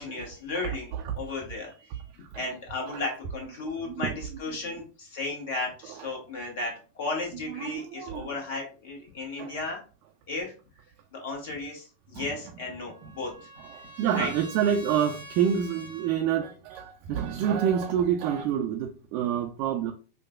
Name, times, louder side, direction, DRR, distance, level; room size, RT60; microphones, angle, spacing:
voice 1, 0.0-2.0 2.3-9.8 10.3-10.5 11.1-13.5 14.1-14.3, left 3 dB, 50° left, 1.2 m, -34 dB
voice 2, 0.5-1.1 2.2-2.5 2.9-3.0 3.6-4.1 5.9-6.1 7.5-8.3 9.4-9.6 12.1-12.3 13.7-19.9, right 9 dB, 45° right, 0.4 m, -28 dB
Trumpet, 12.4-16.2, right 1 dB, 90° left, 1.0 m, -47 dB
4.6 x 2.2 x 2.3 m
figure-of-eight pair, 90°, 0 cm